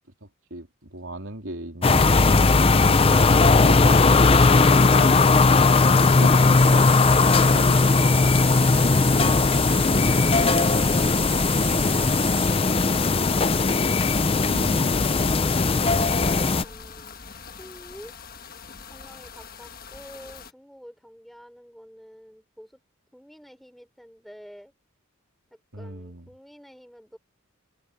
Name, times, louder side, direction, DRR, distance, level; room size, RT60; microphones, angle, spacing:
voice 1, 0.2-8.3 14.5-15.3 25.7-26.3, right 1 dB, 60° right, 3.6 m, -38 dB
sound 1, 1.8-16.6, left 3 dB, 25° left, 0.5 m, -18 dB
sound 2, 6.5-12.5, right 8 dB, 25° right, 6.4 m, -36 dB
sound 3, 8.6-20.5, left 3 dB, 40° left, 1.4 m, -40 dB
voice 2, 15.3-17.2 17.5-18.1 18.9-22.8 23.1-24.7 25.5-27.2, equal, ahead, 5.3 m, -48 dB
open air
head